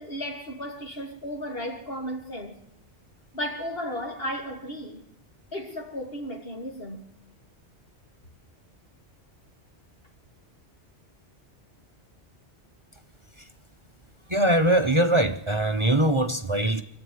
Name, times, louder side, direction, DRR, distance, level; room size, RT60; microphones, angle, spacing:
voice 1, 0.0-2.6 3.3-5.0 5.5-7.1, equal, 55° left, 3.2 m, -34 dB
voice 2, 14.3-16.8, right 1 dB, 25° right, 1.1 m, -22 dB
26.0 x 14.0 x 9.6 m
omnidirectional pair, 1.2 m